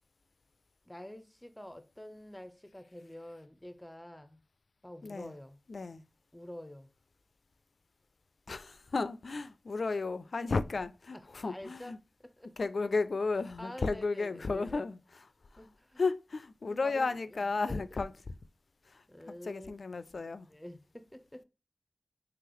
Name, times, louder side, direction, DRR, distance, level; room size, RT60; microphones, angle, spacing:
voice 1, 0.8-4.4 4.8-5.6 6.3-6.9 11.1-12.0 12.2-12.5 13.6-14.8 15.6-16.0 16.7-17.8 19.1-19.9 20.5-21.4, left 1 dB, 15° left, 0.5 m, -48 dB
voice 2, 5.0-5.3 5.7-6.0 8.5-12.0 12.6-15.3 15.5-15.6 16.0-18.1 18.9-19.0 19.4-20.5, left 3 dB, 80° left, 0.3 m, -33 dB
3.8 x 3.3 x 2.9 m
wide cardioid pair, 50°, 0 cm